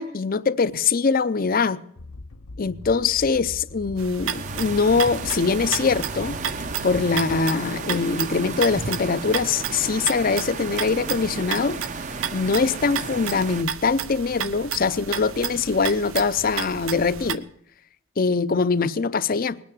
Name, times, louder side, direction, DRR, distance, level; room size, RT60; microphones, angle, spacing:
voice 1, 0.0-1.8 2.6-6.4 6.8-11.8 12.3-17.4 18.2-19.6, left 4 dB, 45° left, 0.5 m, -23 dB
sound 1, 2.0-7.8, left 2 dB, 85° left, 0.8 m, -41 dB
sound 2, 4.0-17.4, right 8 dB, 85° right, 0.7 m, -33 dB
sound 3, 4.2-13.6, right 4 dB, 35° right, 0.7 m, -34 dB
20.0 x 9.4 x 7.2 m
head